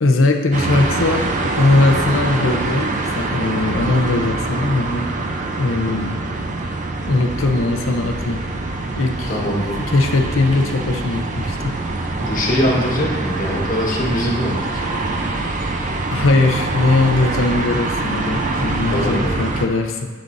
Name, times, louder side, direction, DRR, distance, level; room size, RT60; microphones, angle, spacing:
voice 1, 0.0-5.1 5.6-6.2 7.0-8.4 8.9-9.4 9.8-11.7 16.1-20.1, left 2 dB, 90° left, 4 dB, 0.7 m, -19 dB
sound 1, 0.5-19.6, right 2 dB, 40° right, 0.6 m, -24 dB
voice 2, 9.3-9.7 12.2-14.8 18.9-19.4, equal, 45° left, -3 dB, 1.3 m, -22 dB
7.7 x 6.8 x 2.6 m, 1.4 s
head